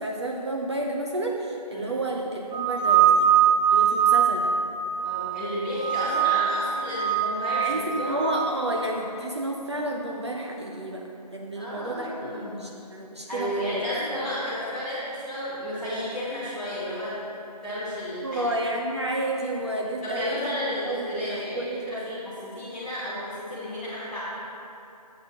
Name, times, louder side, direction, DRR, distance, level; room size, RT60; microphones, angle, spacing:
voice 1, 0.0-3.3 3.7-4.5 7.6-11.0 11.3-13.8 18.2-20.5 20.8-22.2, right 1 dB, 40° right, -1 dB, 0.6 m, -31 dB
sound 1, 2.5-5.4 5.8-6.6 6.9-8.5, right 8 dB, 85° right, 1.1 m, -22 dB
voice 2, 5.0-8.2 11.5-12.7 13.3-17.2 17.6-18.5 20.0-24.2, equal, ahead, -18 dB, 1.1 m, -32 dB
9.6 x 8.5 x 2.9 m, 2.8 s
figure-of-eight pair, 165°, 21 cm